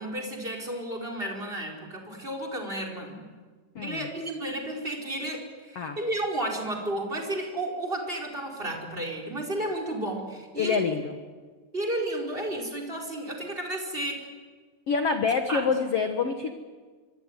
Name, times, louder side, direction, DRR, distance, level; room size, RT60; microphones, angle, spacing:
voice 1, 0.0-3.2 3.8-10.8 11.7-14.3 15.5-15.6, right 1 dB, 15° right, 4 dB, 4.4 m, -32 dB
voice 2, 3.7-4.1 5.7-6.0 10.6-11.2 14.9-16.5, left 5 dB, 70° left, 6 dB, 1.4 m, -26 dB
25.5 x 23.5 x 9.8 m, 1.5 s
omnidirectional pair, 4.8 m